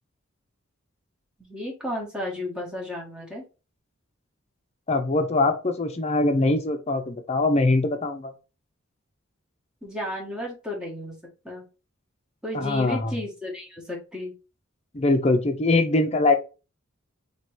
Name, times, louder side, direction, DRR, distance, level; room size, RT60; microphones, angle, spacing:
voice 1, 1.4-3.4 9.8-11.2 11.4-11.6 12.4-14.3, left 1 dB, 5° right, -2 dB, 1.2 m, -33 dB
voice 2, 4.9-8.3 12.5-13.1 14.9-16.3, left 2 dB, 30° left, 5 dB, 0.6 m, -22 dB
3.0 x 3.0 x 4.4 m, 0.32 s
head